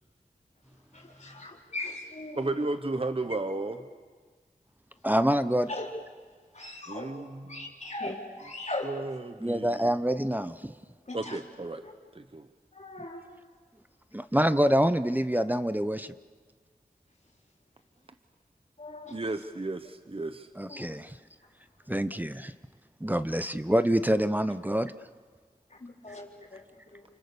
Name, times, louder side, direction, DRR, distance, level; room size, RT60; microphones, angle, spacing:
voice 1, 0.9-2.5 5.7-5.9 6.5-9.0 11.1-11.4 11.8-11.9 12.7-13.3 15.3-15.5 18.8-19.2 20.7-21.0 25.7-27.0, left 2 dB, 50° left, -1 dB, 4.4 m, -39 dB
voice 2, 2.4-3.8 5.5-5.6 6.9-7.6 8.8-9.9 11.1-11.8 12.1-12.5 19.1-20.5, right 2 dB, 40° right, 9 dB, 1.1 m, -33 dB
voice 3, 5.0-5.7 9.4-10.7 14.1-16.1 20.6-21.1 21.9-22.5 23.0-24.9, equal, 10° right, 12 dB, 0.8 m, -26 dB
29.5 x 26.5 x 7.1 m, 1.5 s
wide cardioid pair, 45°, 15 cm